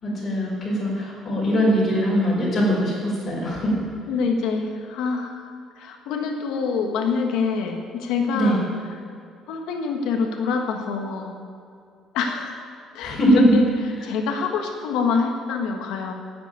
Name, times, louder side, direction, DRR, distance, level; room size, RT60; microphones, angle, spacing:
voice 1, 0.0-3.7 8.3-8.6 13.0-13.6, equal, 25° left, -7 dB, 4.2 m, -21 dB
voice 2, 4.1-8.6 9.5-11.4 12.1-12.7 12.9-13.7 14.0-16.1, left 5 dB, 85° left, 2 dB, 1.5 m, -26 dB
10.5 x 8.3 x 9.3 m, 2.4 s
cardioid pair, 180°, 0 cm